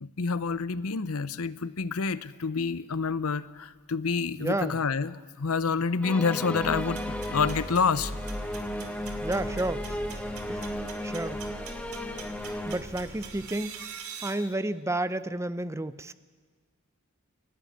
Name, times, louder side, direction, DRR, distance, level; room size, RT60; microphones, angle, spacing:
voice 1, 0.0-8.1, left 5 dB, 80° left, 16 dB, 0.8 m, -28 dB
voice 2, 4.4-4.8 9.2-10.0 10.5-10.7 11.0-11.4 12.7-13.9 14.2-16.1, right 1 dB, 15° right, 15 dB, 0.5 m, -31 dB
sound 1, 6.0-12.8, left 1 dB, 5° left, 1.0 m, -35 dB
sound 2, 6.6-13.5, equal, 35° right, 6.1 m, -41 dB
sound 3, 6.8-14.3, right 7 dB, 85° right, 2.7 m, -46 dB
28.0 x 11.5 x 9.4 m, 1.5 s
head